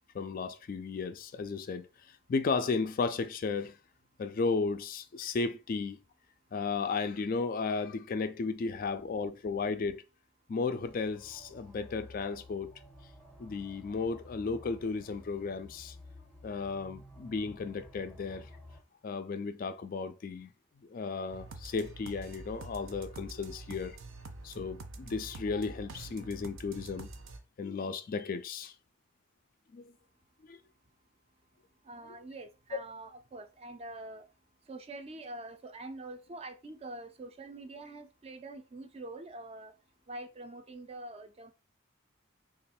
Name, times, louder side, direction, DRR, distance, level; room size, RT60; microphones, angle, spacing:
voice 1, 0.1-1.9 2.3-3.7 4.2-6.0 6.5-10.0 10.5-12.7 13.4-16.0 16.4-18.5 19.0-20.5 20.9-24.0 24.4-27.1 27.6-28.7 29.7-29.9 30.5-30.6, left 4 dB, 45° left, 0.3 m, -34 dB
sound 1, 10.8-18.8, left 1 dB, 5° left, 0.7 m, -53 dB
sound 2, 21.3-27.4, right 2 dB, 75° right, 0.6 m, -46 dB
voice 2, 31.8-34.3 34.6-39.8 40.1-41.5, right 2 dB, 30° right, 0.4 m, -45 dB
3.1 x 2.4 x 4.2 m
head